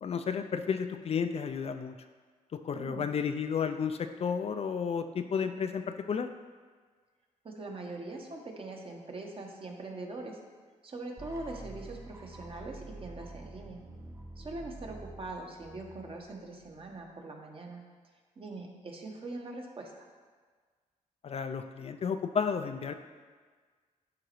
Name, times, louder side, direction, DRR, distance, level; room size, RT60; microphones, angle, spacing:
voice 1, 0.0-1.9 2.5-6.3 21.2-22.9, left 6 dB, 50° left, 8 dB, 0.4 m, -32 dB
voice 2, 2.7-3.1 7.4-10.4 10.8-13.8 14.4-17.8 18.4-20.1, right 2 dB, 40° right, 1 dB, 1.1 m, -42 dB
sound 1, 11.2-17.1, right 2 dB, 20° right, 0.7 m, -48 dB
11.0 x 4.0 x 3.1 m, 1.5 s
cardioid pair, 80°, 14 cm